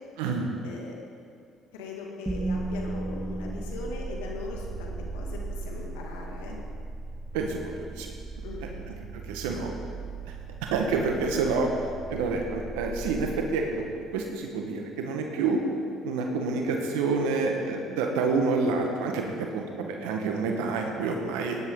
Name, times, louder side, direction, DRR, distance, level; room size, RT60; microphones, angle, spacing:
voice 1, 0.6-1.0 1.7-6.6 8.4-8.9, left 3 dB, 90° left, 0 dB, 2.2 m, -40 dB
sound 1, 2.3-14.4, right 2 dB, 15° right, 0.8 m, -37 dB
voice 2, 7.3-8.1 9.3-9.7 10.7-11.7 12.1-13.9 14.1-15.6 16.0-21.6, right 4 dB, 85° right, 2 dB, 1.3 m, -28 dB
17.0 x 10.5 x 3.8 m, 2.2 s
supercardioid pair, 70°, 0 cm